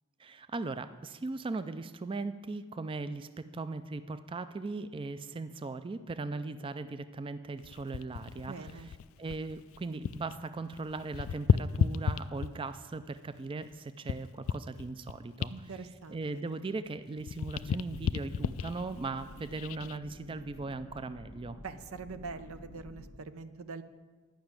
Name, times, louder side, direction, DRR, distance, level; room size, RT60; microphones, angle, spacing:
voice 1, 0.2-8.9 9.2-15.7 16.1-21.6, right 3 dB, 25° right, 12 dB, 0.4 m, -38 dB
sound 1, 7.6-10.4 10.6-12.8 13.3-16.9 17.2-20.0 20.5-20.7, left 7 dB, 70° left, 0.3 m, -34 dB
voice 2, 8.5-8.9 15.5-16.4 21.6-23.8, right 4 dB, 85° right, 11 dB, 0.7 m, -44 dB
sound 2, 18.0-23.2, left 1 dB, 90° left, 1.0 m, -51 dB
11.5 x 5.9 x 8.9 m, 1.4 s
head